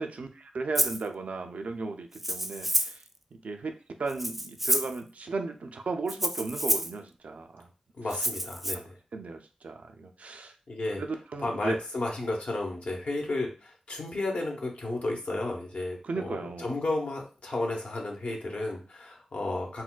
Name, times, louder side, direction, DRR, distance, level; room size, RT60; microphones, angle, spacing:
voice 1, 0.0-3.0 3.4-3.7 4.0-7.7 9.1-10.5 11.0-11.8 16.0-16.7, right 3 dB, 80° right, 5 dB, 0.4 m, -35 dB
Rattle (instrument), 0.7-1.0 2.1-3.0 4.1-5.0 6.1-6.9 8.1-8.7, right 1 dB, 10° right, 0.3 m, -29 dB
voice 2, 8.0-8.9 10.7-11.0 11.4-19.8, left 2 dB, 70° left, 0 dB, 0.9 m, -33 dB
4.1 x 2.2 x 2.2 m, 0.36 s
cardioid pair, 45°, 2 cm